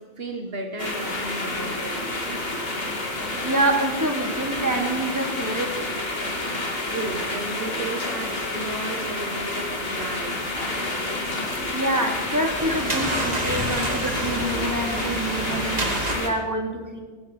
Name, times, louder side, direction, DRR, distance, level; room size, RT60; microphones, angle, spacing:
voice 1, 0.0-2.0 6.9-10.4, right 2 dB, 60° right, 4 dB, 1.6 m, -34 dB
sound 1, 0.8-16.3, left 2 dB, 60° left, 2.6 m, -29 dB
voice 2, 3.4-5.9 11.7-15.9 16.1-17.0, right 1 dB, 15° right, 1 dB, 2.8 m, -26 dB
sound 2, 10.7-10.9 11.5-11.9 12.2-16.1, right 1 dB, 35° right, 2.0 m, -29 dB
17.5 x 15.5 x 4.2 m, 1.5 s
omnidirectional pair, 1.1 m